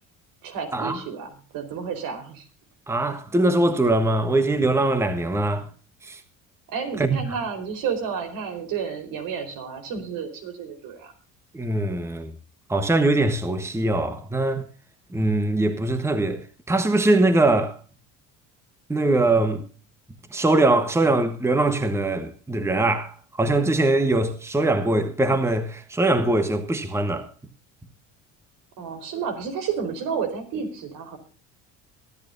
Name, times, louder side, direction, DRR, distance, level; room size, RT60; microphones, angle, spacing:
voice 1, 0.4-2.5 6.7-11.1 28.8-31.2, right 6 dB, 75° right, 4.3 m, -31 dB
voice 2, 2.9-5.7 6.0-6.2 7.0-7.4 11.5-12.3 12.7-14.6 15.1-17.8 18.9-19.6 20.3-27.3, right 2 dB, 10° right, 1.3 m, -22 dB
22.5 x 11.0 x 2.7 m
cardioid pair, 110°, 34 cm